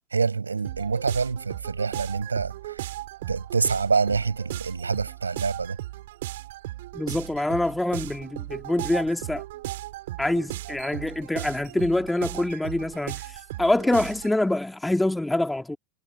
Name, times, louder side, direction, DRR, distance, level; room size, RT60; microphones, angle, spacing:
voice 1, 0.1-2.9 3.3-5.8, right 4 dB, 75° right, 7.8 m, -26 dB
sound 1, 0.6-14.4, right 16 dB, 55° right, 6.5 m, -37 dB
voice 2, 6.9-9.4 10.2-13.2 13.6-15.8, left 1 dB, 5° left, 3.0 m, -25 dB
figure-of-eight pair, 90°, 0 cm